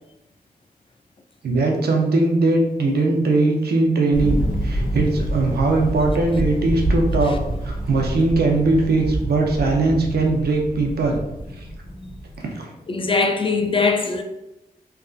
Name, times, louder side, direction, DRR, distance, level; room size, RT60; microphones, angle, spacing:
voice 1, 1.4-7.4 7.6-11.2 11.6-11.7 12.4-12.7, right 3 dB, 85° right, 0.6 m, -20 dB
Thunder, 4.1-12.3, right 1 dB, 60° left, 1.1 m, -27 dB
voice 2, 12.9-14.2, left 4 dB, 35° left, 0.4 m, -21 dB
3.3 x 2.5 x 2.4 m
wide cardioid pair, 75°, 16 cm